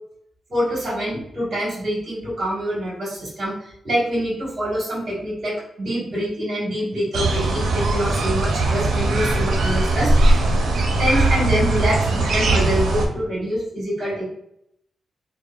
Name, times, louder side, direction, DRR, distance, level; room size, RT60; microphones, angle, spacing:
voice 1, 0.5-10.1 11.0-14.2, equal, 40° right, -6 dB, 1.5 m, -25 dB
sound 1, 7.1-13.1, right 2 dB, 85° right, 0.5 m, -20 dB
3.3 x 2.0 x 2.3 m, 0.75 s
wide cardioid pair, 180°, 0 cm